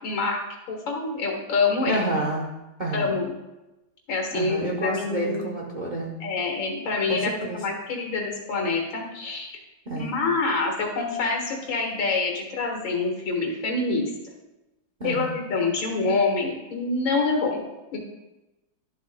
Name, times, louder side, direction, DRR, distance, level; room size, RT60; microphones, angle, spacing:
voice 1, 0.0-0.4 0.7-2.0 2.9-3.3 4.1-5.4 6.2-9.6 9.9-14.1 15.0-17.6 17.9-18.0, left 3 dB, 85° left, 1 dB, 2.3 m, -26 dB
voice 2, 1.9-2.5 2.8-3.2 4.3-6.2 7.1-7.6 9.9-10.2 15.0-15.3, right 1 dB, 40° right, -2 dB, 0.6 m, -29 dB
12.5 x 7.4 x 2.2 m, 1.0 s
omnidirectional pair, 2.1 m